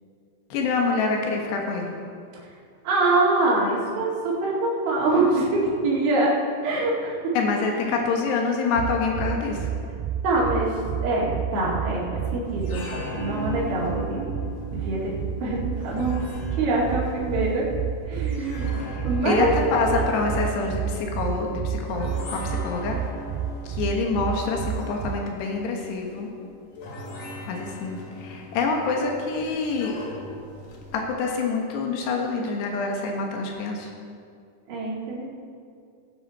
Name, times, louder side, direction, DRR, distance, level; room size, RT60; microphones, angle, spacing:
voice 1, 0.5-1.9 7.4-9.7 19.2-23.0 23.7-26.3 27.5-30.0 30.9-33.9, left 4 dB, 85° left, 1 dB, 3.6 m, -26 dB
voice 2, 2.8-6.3 6.6-7.2 7.8-8.0 10.2-10.7 11.0-12.9 13.1-14.2 14.7-15.1 15.4-16.1 16.6-17.6 18.1-18.7 19.0-19.5 19.9-20.0 34.7-35.3, right 2 dB, 65° right, -6 dB, 4.1 m, -24 dB
sound 1, 8.8-25.1, right 8 dB, 80° right, 2.4 m, -31 dB
sound 2, 12.5-31.0, left 1 dB, 60° left, 2.9 m, -40 dB
18.5 x 9.6 x 4.3 m, 2.3 s
omnidirectional pair, 4.7 m